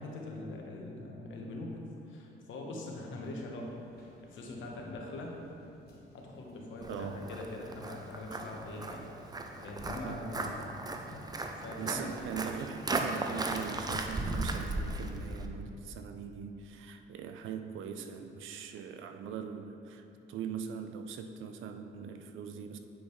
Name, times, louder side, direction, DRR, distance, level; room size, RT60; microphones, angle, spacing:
voice 1, 0.0-1.7 2.1-5.3 6.1-10.7 11.6-12.1, left 2 dB, 75° left, 0 dB, 1.1 m, -43 dB
sound 1, 3.1-13.7, equal, 50° left, 1.4 m, -58 dB
Walk footsteps, 6.8-15.5, right 2 dB, 20° right, 0.5 m, -37 dB
voice 2, 6.9-7.3 10.0-10.6 11.8-22.8, right 7 dB, 80° right, 7 dB, 0.5 m, -41 dB
8.6 x 5.1 x 3.2 m, 2.6 s
cardioid pair, 90°, 20 cm